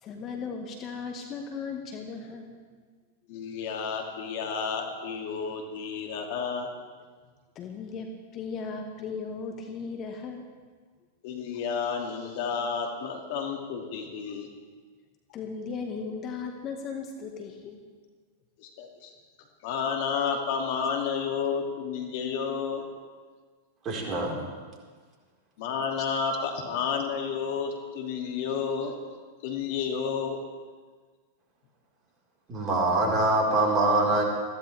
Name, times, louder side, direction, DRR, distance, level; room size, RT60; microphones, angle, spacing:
voice 1, 0.0-2.6 7.5-10.4 15.3-17.8, left 5 dB, 35° left, 3 dB, 1.5 m, -36 dB
voice 2, 3.3-6.7 11.2-14.5 18.6-19.1 19.6-22.8 25.6-28.9 29.4-30.4, left 6 dB, 55° left, 2 dB, 2.5 m, -31 dB
voice 3, 23.8-24.3 32.5-34.2, right 2 dB, 30° right, -1 dB, 4.4 m, -24 dB
21.5 x 15.5 x 3.4 m, 1.5 s
figure-of-eight pair, 95°, 0 cm